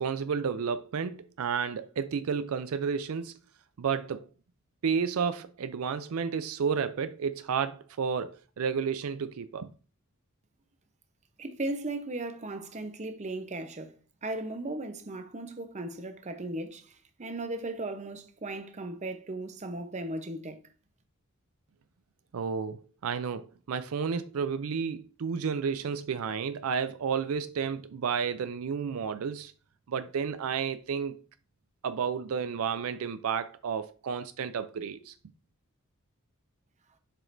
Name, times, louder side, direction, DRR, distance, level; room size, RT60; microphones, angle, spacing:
voice 1, 0.0-3.3 3.8-4.3 4.8-9.7 22.3-29.5 29.9-31.2 31.8-35.1, right 6 dB, 80° right, 0.4 m, -31 dB
voice 2, 11.4-14.0 14.2-20.6, right 2 dB, 35° right, 0.8 m, -37 dB
7.4 x 4.9 x 2.6 m
head